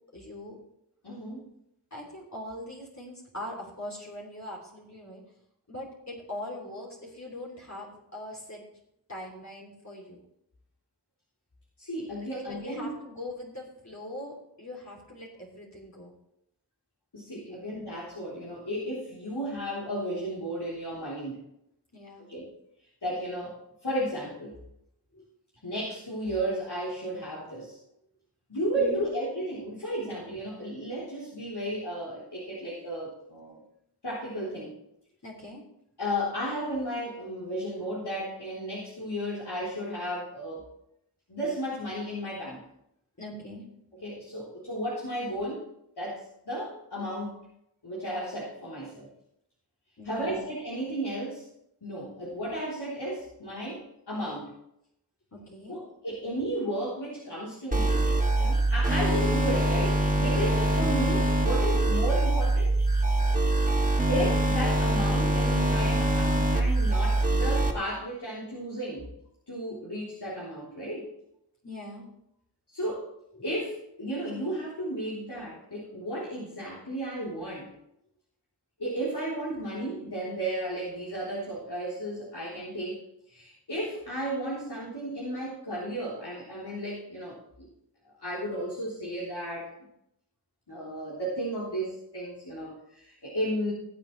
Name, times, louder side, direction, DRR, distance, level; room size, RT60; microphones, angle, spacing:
voice 1, 0.1-0.6 1.9-5.2 5.7-8.6 9.1-10.2 12.3-16.1 17.4-17.6 21.9-22.3 25.1-25.3 28.7-29.1 35.2-35.6 43.2-43.6 50.0-50.4 55.3-55.8 71.6-72.1 73.3-73.4, left 1 dB, 45° left, -3 dB, 3.2 m, -41 dB
voice 2, 1.0-1.5 11.8-12.9 17.1-21.4 22.3-22.5 23.0-23.5 23.8-24.5 25.6-27.8 28.5-33.6 34.0-34.8 36.0-40.7 41.3-42.6 44.0-45.6 46.0-47.4 47.8-49.1 50.0-51.4 51.8-54.5 55.7-58.0 58.4-62.8 64.1-69.1 69.5-71.1 72.7-73.1 73.4-77.7 78.8-83.0 83.3-87.4 88.2-89.7 90.7-93.7, right 1 dB, 75° left, -8 dB, 3.9 m, -33 dB
sound 1, 57.7-67.7, right 1 dB, 20° right, 2.3 m, -24 dB
19.5 x 7.9 x 3.3 m, 0.77 s
wide cardioid pair, 45°, 40 cm